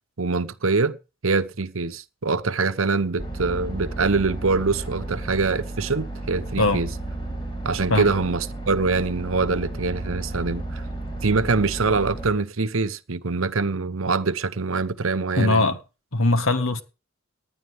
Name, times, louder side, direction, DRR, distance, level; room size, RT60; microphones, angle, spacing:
voice 1, 0.2-1.0 1.2-6.9 7.6-10.8 11.2-15.7, right 4 dB, 75° right, 0.9 m, -24 dB
sound 1, 3.2-12.3, right 2 dB, 25° left, 5.1 m, -33 dB
voice 2, 15.4-15.8 16.1-16.8, left 2 dB, 80° left, 1.8 m, -20 dB
19.0 x 11.0 x 3.6 m
head